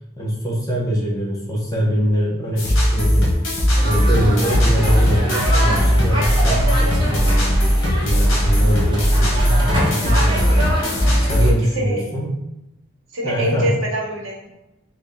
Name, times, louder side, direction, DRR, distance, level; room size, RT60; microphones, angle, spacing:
voice 1, 0.2-3.3 3.8-10.7 11.2-12.3 13.2-13.7, equal, 15° left, -5 dB, 0.8 m, -23 dB
sound 1, 2.6-11.5, equal, 65° left, 1.0 m, -18 dB
sound 2, 3.8-11.5, right 1 dB, 25° right, 0.8 m, -26 dB
voice 2, 13.1-14.5, equal, 70° right, -1 dB, 0.9 m, -24 dB
3.6 x 2.2 x 3.6 m, 0.93 s
head